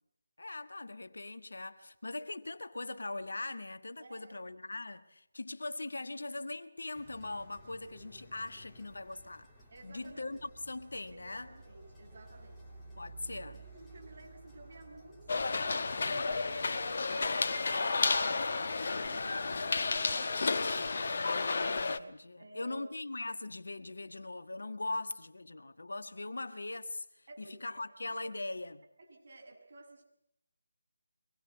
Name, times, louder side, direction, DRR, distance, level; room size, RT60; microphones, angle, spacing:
voice 1, 0.4-9.5 9.8-11.5 13.0-13.6 21.0-28.8, left 2 dB, 65° left, 1.4 m, -41 dB
voice 2, 4.0-4.3 9.7-10.4 11.1-12.7 13.2-21.4 22.4-22.8 27.3-27.8 29.0-30.0, right 2 dB, 50° right, 7.0 m, -55 dB
sound 1, 6.9-19.0, right 2 dB, 5° left, 3.4 m, -55 dB
sound 2, 15.3-22.0, left 3 dB, 45° left, 1.2 m, -32 dB
24.0 x 21.0 x 8.3 m
figure-of-eight pair, 155°, 0 cm